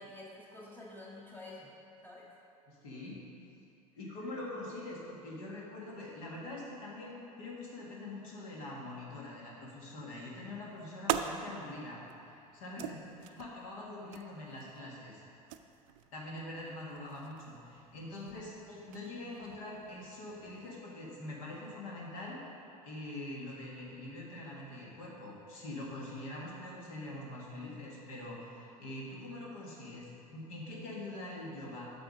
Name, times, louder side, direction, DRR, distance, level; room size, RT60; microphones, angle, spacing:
voice 1, 0.0-1.7 2.0-2.2 12.8-12.9 18.3-18.4, left 2 dB, 10° left, -4 dB, 1.9 m, -49 dB
voice 2, 2.7-3.2 4.0-13.0 13.3-15.2 16.1-22.4 22.8-31.9, left 2 dB, 65° left, -4 dB, 1.7 m, -44 dB
sound 1, 10.3-20.8, right 10 dB, 60° right, 0.4 m, -44 dB
7.7 x 5.8 x 5.0 m, 2.6 s
hypercardioid pair, 75°, 19 cm